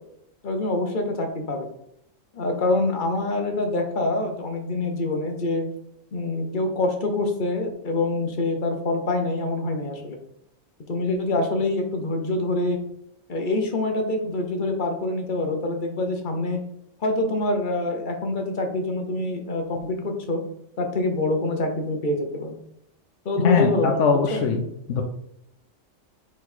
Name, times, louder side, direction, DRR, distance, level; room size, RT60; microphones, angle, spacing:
voice 1, 0.4-1.7 2.3-5.6 6.1-10.2 10.9-12.8 13.3-16.6 17.0-20.4 20.8-22.5 23.2-24.4, left 2 dB, 40° left, 4 dB, 1.0 m, -25 dB
voice 2, 23.4-24.6 24.9-25.0, left 4 dB, 65° left, 2 dB, 1.0 m, -21 dB
4.7 x 4.7 x 4.2 m, 0.75 s
omnidirectional pair, 1.4 m